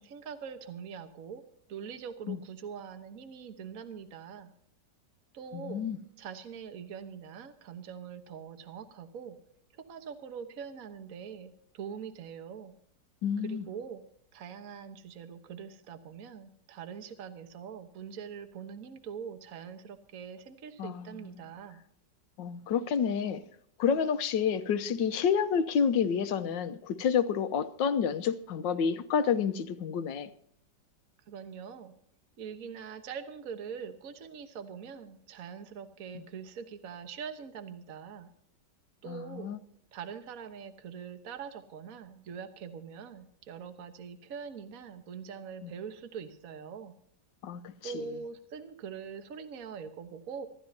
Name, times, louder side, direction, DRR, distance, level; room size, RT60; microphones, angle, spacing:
voice 1, 0.0-1.4 1.7-4.5 5.3-5.9 6.2-9.4 9.7-12.7 13.4-14.0 14.3-21.8 31.3-31.9 32.4-38.3 39.0-39.5 39.9-46.9 47.8-50.5, right 7 dB, 55° right, 1.5 m, -43 dB
voice 2, 5.5-6.0 13.2-13.6 20.8-21.1 22.4-23.4 23.8-30.3 39.1-39.6 45.6-45.7 47.4-47.7, left 7 dB, 85° left, 1.5 m, -29 dB
25.5 x 14.0 x 2.8 m
omnidirectional pair, 2.0 m